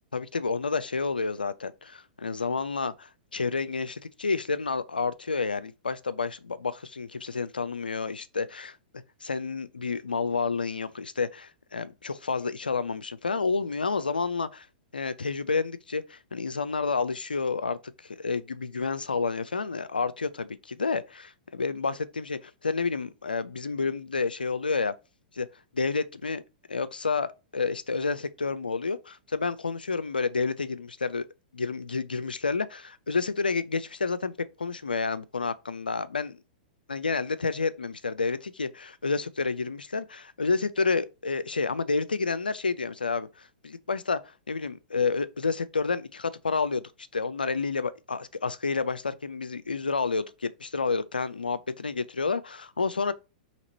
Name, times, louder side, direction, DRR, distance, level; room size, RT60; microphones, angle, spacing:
voice 1, 0.1-8.8 9.2-14.7 14.9-24.9 25.4-25.5 25.7-26.4 26.7-31.3 31.5-34.3 34.6-36.4 36.9-44.2 44.5-53.1, left 4 dB, 90° left, 0.3 m, -30 dB
2.9 x 2.8 x 4.0 m
figure-of-eight pair, 105°, 5 cm